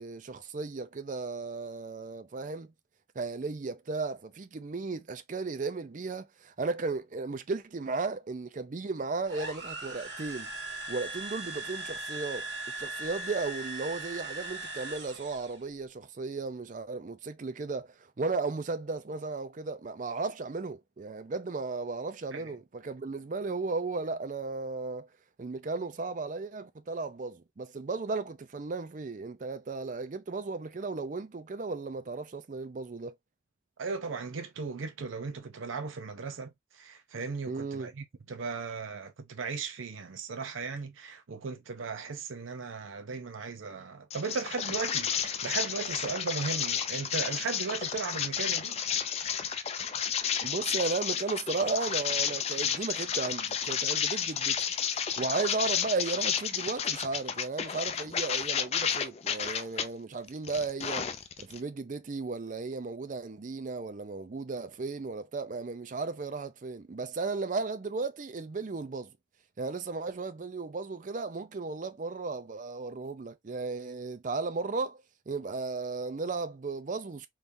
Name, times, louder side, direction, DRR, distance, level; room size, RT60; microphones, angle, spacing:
voice 1, 0.0-2.7 3.2-10.5 10.9-12.5 12.7-25.1 25.4-33.1 37.5-37.9 50.4-61.1 61.4-69.1 69.6-77.3, right 3 dB, 40° right, 0.4 m, -35 dB
sound 1, 9.3-15.6, right 2 dB, 60° right, 1.4 m, -39 dB
voice 2, 33.8-48.8, right 4 dB, 90° right, 0.6 m, -37 dB
sound 2, 44.1-59.9 60.3-61.6, left 8 dB, 30° left, 0.3 m, -31 dB
3.6 x 3.1 x 2.6 m
head